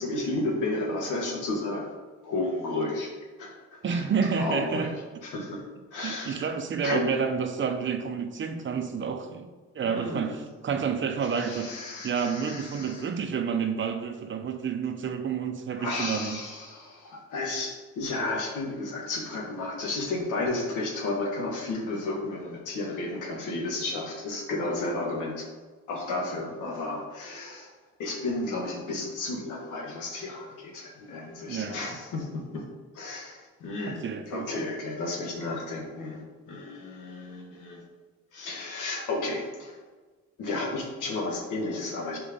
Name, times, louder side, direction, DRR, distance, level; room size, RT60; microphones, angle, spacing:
voice 1, 0.0-1.9 2.2-3.1 3.4-4.0 4.4-4.9 5.2-5.6 5.9-6.5 6.8-7.1 9.9-10.4 11.2-13.1 15.8-25.5 25.9-27.7 28.0-32.6 32.9-34.0 34.3-36.2 36.5-37.8 38.3-39.8 40.4-42.2, left 2 dB, 85° left, 0 dB, 1.3 m, -32 dB
voice 2, 3.8-4.9 6.0-9.5 9.7-11.7 12.0-16.4 31.5-31.8 33.9-34.5, right 6 dB, 40° right, 8 dB, 0.6 m, -29 dB
5.1 x 3.6 x 5.1 m, 1.4 s
cardioid pair, 90°, 30 cm